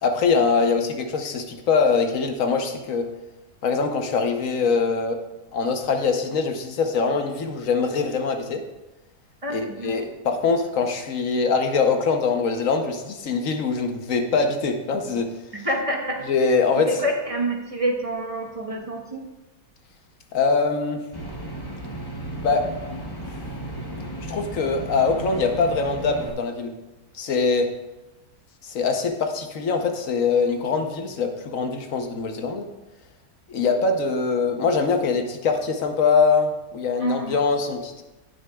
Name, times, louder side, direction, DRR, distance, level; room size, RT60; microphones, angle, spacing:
voice 1, 0.0-3.1 3.6-5.2 5.5-8.7 9.5-15.3 16.3-17.0 20.3-21.0 22.4-22.7 24.3-26.7 27.1-27.7 28.6-32.7 33.5-38.0, left 4 dB, 60° left, 5 dB, 1.1 m, -23 dB
voice 2, 9.4-10.0 15.5-16.2 16.9-19.2 37.0-37.4, right 1 dB, 25° right, 1 dB, 1.0 m, -27 dB
sound 1, 21.1-26.3, right 1 dB, 20° left, 0.7 m, -34 dB
18.0 x 6.4 x 2.3 m, 1.0 s
omnidirectional pair, 1.7 m